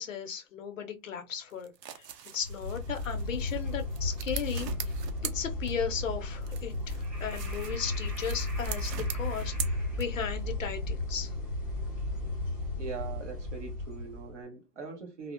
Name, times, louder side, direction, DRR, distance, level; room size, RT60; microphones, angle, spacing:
voice 1, 0.0-2.1 2.3-4.7 5.2-9.5 10.0-11.3, left 7 dB, 55° left, 0.6 m, -36 dB
sound 1, 1.5-6.1 6.4-10.4, right 9 dB, 90° right, 0.6 m, -42 dB
sound 2, 2.4-14.3, left 2 dB, 5° right, 0.8 m, -34 dB
voice 2, 12.8-15.3, right 5 dB, 50° right, 0.9 m, -41 dB
2.7 x 2.0 x 2.3 m
hypercardioid pair, 175°, 48 cm